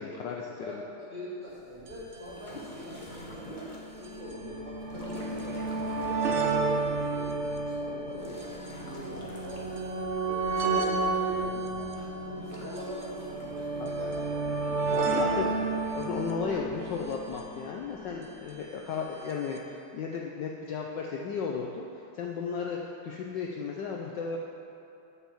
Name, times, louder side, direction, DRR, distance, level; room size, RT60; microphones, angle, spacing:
voice 1, 0.0-0.8 13.8-13.9 14.9-15.4 15.9-24.4, left 5 dB, 70° left, 0 dB, 1.1 m, -34 dB
voice 2, 0.6-5.7 6.3-9.9 10.2-14.4 15.0-15.5, equal, 35° right, -8 dB, 2.5 m, -43 dB
sound 1, 1.5-4.1 4.8-6.4 7.9-10.2 12.2-13.6, left 1 dB, 30° left, 0.8 m, -46 dB
sound 2, 1.9-2.0 2.1-2.2 3.1-18.3 19.3-19.4 19.6-19.7, right 3 dB, 60° right, 0.7 m, -32 dB
8.3 x 5.9 x 7.2 m, 2.8 s
omnidirectional pair, 2.4 m